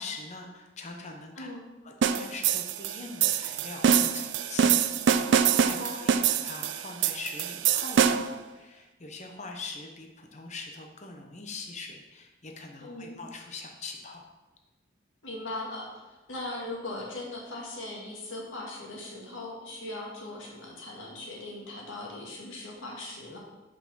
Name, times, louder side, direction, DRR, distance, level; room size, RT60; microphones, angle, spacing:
voice 1, 0.0-1.5 1.8-14.2, left 3 dB, 35° left, 3 dB, 0.8 m, -42 dB
sound 1, 2.0-8.4, right 7 dB, 65° right, 0.4 m, -25 dB
voice 2, 5.8-6.2 12.8-13.2 15.2-23.4, left 2 dB, 80° left, -2 dB, 2.0 m, -39 dB
5.7 x 4.9 x 6.2 m, 1.1 s
head